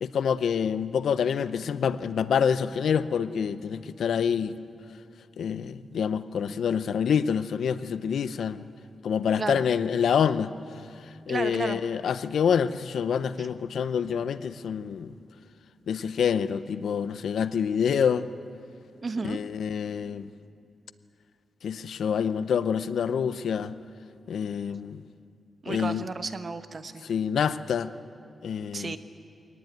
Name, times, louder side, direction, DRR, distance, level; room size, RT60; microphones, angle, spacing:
voice 1, 0.0-4.6 5.4-8.7 9.0-10.5 11.3-15.1 15.9-18.3 19.2-20.3 21.6-23.7 24.3-25.0 25.7-26.1 27.0-27.9 28.4-29.0, left 7 dB, 90° left, 13 dB, 0.6 m, -27 dB
voice 2, 11.3-11.8 13.4-13.5 19.0-19.4 25.6-27.0 28.7-29.0, right 4 dB, 45° right, 10 dB, 1.0 m, -33 dB
22.0 x 18.5 x 9.2 m, 2.5 s
wide cardioid pair, 100°, 0 cm